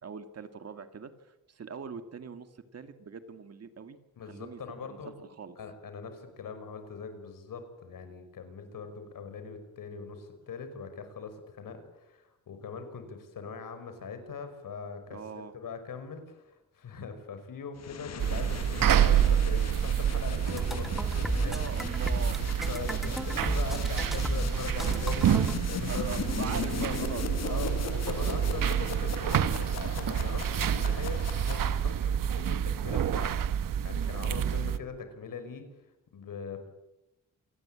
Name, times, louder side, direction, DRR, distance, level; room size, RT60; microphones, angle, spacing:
voice 1, 0.0-4.0 4.2-5.6 15.1-15.6 21.3-22.6 22.9-23.2 25.2-25.3 25.9-28.3 34.1-34.7, right 6 dB, 50° right, 9 dB, 2.1 m, -42 dB
voice 2, 4.2-5.1 5.6-15.0 15.3-21.6 22.7-25.3 25.7-26.1 26.5-27.0 27.5-33.3 33.6-35.7 36.1-36.7, left 5 dB, 85° left, 8 dB, 5.3 m, -41 dB
sound 1, 17.8-32.1, left 8 dB, 55° left, 1.0 m, -39 dB
sound 2, 18.2-34.8, right 9 dB, 85° right, 1.2 m, -28 dB
sound 3, 20.5-25.5, equal, ahead, 1.4 m, -34 dB
28.0 x 19.0 x 8.7 m, 0.92 s
wide cardioid pair, 165°, 32 cm